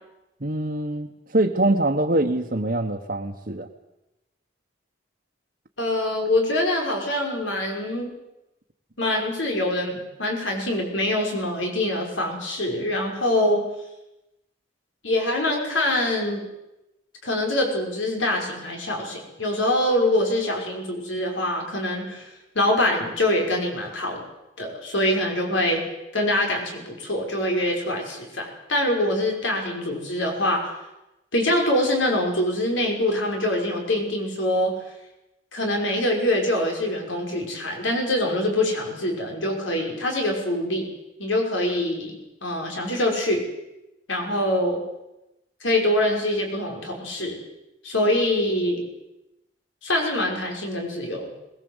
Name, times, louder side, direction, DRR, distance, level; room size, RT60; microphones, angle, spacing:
voice 1, 0.4-3.7, right 1 dB, 50° right, 0 dB, 1.3 m, -24 dB
voice 2, 5.8-8.1 9.0-13.6 15.0-16.5 17.2-22.3 22.5-24.2 24.6-25.8 26.1-30.7 31.3-34.7 35.5-40.9 41.2-43.4 44.1-44.8 45.6-47.4 47.8-48.9 49.8-51.3, left 1 dB, 90° left, 2 dB, 5.7 m, -24 dB
21.5 x 20.5 x 8.1 m, 0.93 s
head